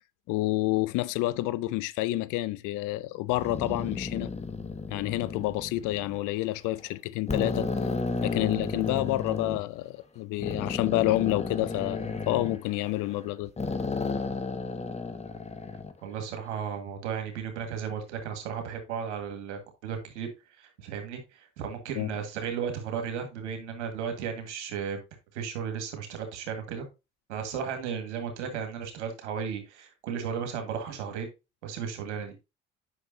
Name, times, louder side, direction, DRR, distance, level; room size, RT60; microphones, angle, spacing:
voice 1, 0.3-4.3 4.9-7.7 8.2-13.5 22.0-22.1, left 17 dB, 65° left, 0.6 m, -29 dB
sound 1, 3.3-6.2 6.8-6.9 7.3-9.6 10.4-13.2 13.6-15.9, left 4 dB, 20° left, 1.2 m, -33 dB
voice 2, 16.0-20.3 20.6-25.0 25.3-26.9 27.3-31.3 31.6-32.4, right 7 dB, 85° right, 1.7 m, -35 dB
8.1 x 5.9 x 2.7 m
hypercardioid pair, 60°, 34 cm